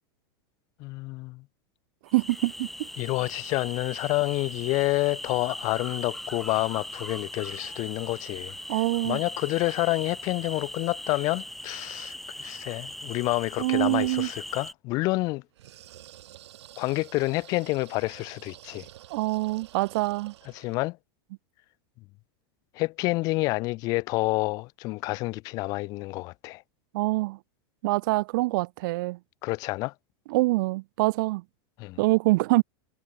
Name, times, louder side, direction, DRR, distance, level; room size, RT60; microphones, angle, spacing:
voice 1, 0.8-1.4 3.0-8.5 9.0-15.4 16.8-18.9 20.5-21.0 22.7-26.6 29.4-29.9 31.8-32.0, left 22 dB, 25° left, 0.4 m, -28 dB
sound 1, 2.1-14.7, left 1 dB, ahead, 2.0 m, -40 dB
voice 2, 2.1-2.9 8.7-9.2 13.6-14.3 19.1-20.3 26.9-27.4 27.8-29.2 30.3-31.4 32.0-32.6, right 21 dB, 50° right, 1.1 m, -25 dB
sound 2, 15.5-20.9, right 13 dB, 85° right, 3.9 m, -49 dB
supercardioid pair, 170°, 14 cm